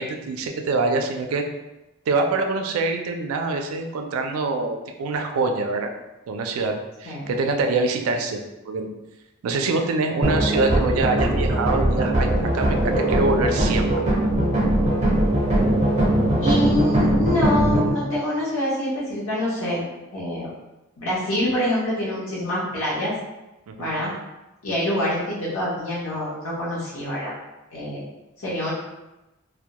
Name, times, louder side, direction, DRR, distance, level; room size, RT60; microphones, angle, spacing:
voice 1, 0.0-1.4 2.1-5.9 6.3-6.7 7.0-8.9 9.4-14.1 23.7-23.9, right 3 dB, 90° right, 4 dB, 0.3 m, -25 dB
sound 1, 10.2-17.9, right 1 dB, 30° right, 0.5 m, -20 dB
voice 2, 16.4-19.9 20.1-20.5 21.0-23.1 23.8-24.1 24.6-27.3 27.7-28.0 28.4-28.7, left 1 dB, 80° left, -7 dB, 0.7 m, -25 dB
2.2 x 2.0 x 2.8 m, 1.0 s
head